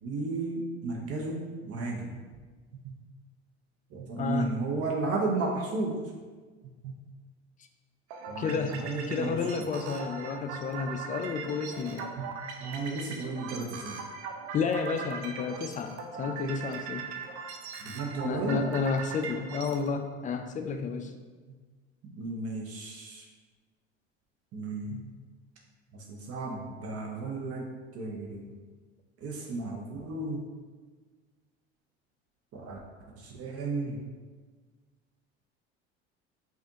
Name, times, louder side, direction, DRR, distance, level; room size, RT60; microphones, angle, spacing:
voice 1, 0.0-2.2 2.8-3.0 3.9-6.1 6.8-7.0 8.3-9.3 12.2-12.3 12.6-14.0 17.8-18.6 22.1-23.2 24.5-25.1 25.9-27.6 27.9-28.5 29.2-30.4 32.5-32.8 33.2-34.0, right 3 dB, 45° right, -1 dB, 0.8 m, -34 dB
voice 2, 4.2-4.5 8.4-12.1 14.5-15.9 16.2-17.0 18.2-21.1, left 5 dB, 25° left, 6 dB, 0.3 m, -31 dB
sound 1, 8.1-19.9, right 5 dB, 75° right, 0.6 m, -40 dB
5.0 x 2.5 x 2.8 m, 1.4 s
hypercardioid pair, 80°, 33 cm